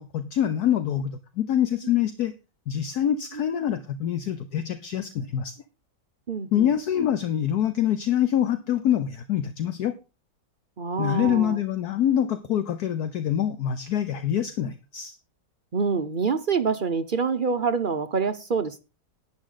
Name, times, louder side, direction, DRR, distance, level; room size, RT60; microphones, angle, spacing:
voice 1, 0.0-2.3 2.7-5.5 6.5-9.9 11.0-15.2, left 10 dB, 65° left, 11 dB, 1.3 m, -25 dB
voice 2, 6.3-6.7 10.8-11.6 15.7-18.8, right 5 dB, 55° right, 9 dB, 0.5 m, -26 dB
11.5 x 9.9 x 3.8 m, 0.29 s
omnidirectional pair, 1.9 m